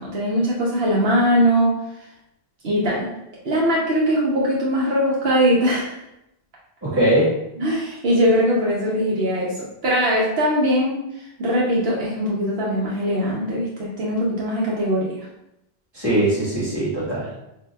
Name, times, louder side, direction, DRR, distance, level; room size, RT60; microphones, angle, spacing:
voice 1, 0.0-1.8 2.6-3.1 3.4-6.0 7.6-11.0 11.4-15.2, equal, 75° right, -5 dB, 0.9 m, -21 dB
voice 2, 6.8-7.3 15.9-17.4, right 1 dB, 25° right, -9 dB, 1.4 m, -20 dB
5.5 x 2.1 x 2.2 m, 0.86 s
omnidirectional pair, 1.1 m